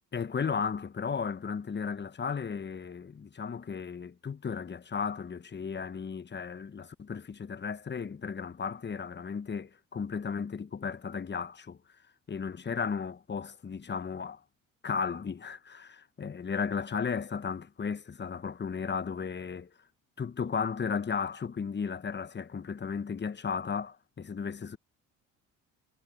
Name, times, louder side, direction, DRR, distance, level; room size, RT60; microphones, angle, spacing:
voice 1, 0.1-11.8 12.3-14.4 14.8-19.7 20.2-24.8, left 6 dB, 30° left, 1.2 m, -35 dB
hypercardioid pair, 60°, 38 cm